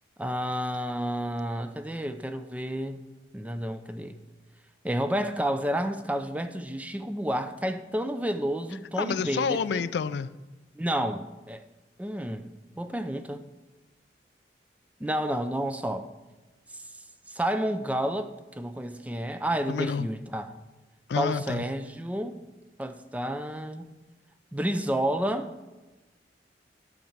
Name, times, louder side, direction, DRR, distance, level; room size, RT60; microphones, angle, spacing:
voice 1, 0.2-3.0 3.3-4.2 4.8-9.9 10.8-11.6 12.0-12.5 12.8-13.5 15.0-16.1 17.3-20.5 21.1-22.4 22.8-23.9 24.5-25.5, equal, 10° right, 0.4 m, -30 dB
voice 2, 9.0-10.3 19.7-20.1 21.1-21.6, left 6 dB, 75° left, 0.4 m, -29 dB
8.5 x 5.2 x 7.3 m
head